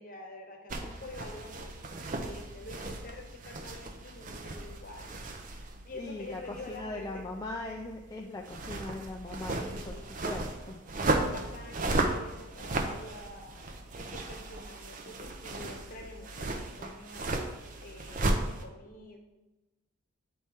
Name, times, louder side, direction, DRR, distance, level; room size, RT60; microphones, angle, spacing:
voice 1, 0.0-7.4 9.5-10.2 11.3-13.6 13.9-17.3 17.8-19.2, left 2 dB, 40° left, 3 dB, 1.0 m, -47 dB
sound 1, 0.7-18.6, right 2 dB, 35° right, 0.5 m, -35 dB
voice 2, 5.9-9.7 10.2-10.8, left 2 dB, 15° left, 1 dB, 0.3 m, -40 dB
8.6 x 4.2 x 3.5 m, 1.1 s
head